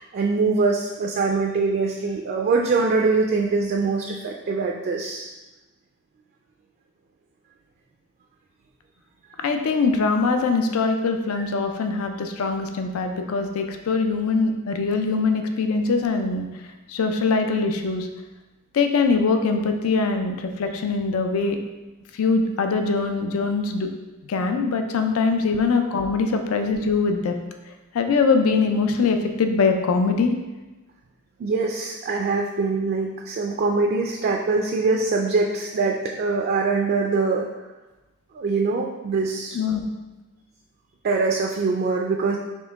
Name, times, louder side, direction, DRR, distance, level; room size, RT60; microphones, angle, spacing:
voice 1, 0.0-5.3 25.5-25.6 31.4-37.5 38.3-39.6 41.0-42.4, right 4 dB, 45° right, 1 dB, 0.3 m, -23 dB
voice 2, 9.4-16.5 16.9-18.1 18.7-21.6 22.1-23.9 24.2-27.4 27.9-30.3 39.5-39.8, left 4 dB, 80° left, 6 dB, 0.4 m, -22 dB
4.5 x 2.9 x 3.4 m, 1.1 s
head